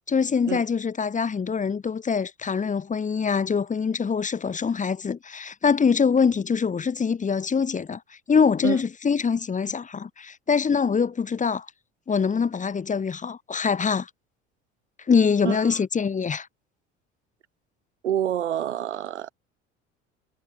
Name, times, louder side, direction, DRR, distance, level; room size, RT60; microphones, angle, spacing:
voice 1, 0.1-8.0 8.3-11.7 12.1-14.1 15.1-16.5, left 6 dB, 20° left, 1.3 m, -24 dB
voice 2, 18.0-19.3, right 10 dB, 80° right, 1.3 m, -27 dB
figure-of-eight pair, 65°, 35 cm